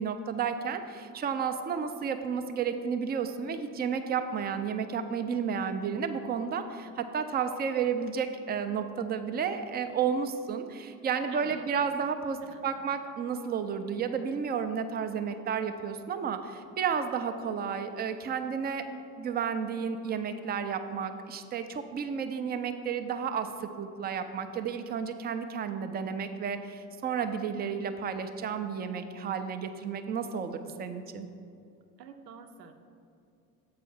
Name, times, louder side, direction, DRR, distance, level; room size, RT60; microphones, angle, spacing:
voice 1, 0.0-18.8 19.2-31.3, right 6 dB, 20° right, 8 dB, 0.4 m, -32 dB
voice 2, 11.3-11.7 12.4-12.7 32.0-32.7, right 7 dB, 80° right, 7 dB, 0.7 m, -47 dB
7.4 x 4.8 x 5.5 m, 2.6 s
hypercardioid pair, 70°, 49 cm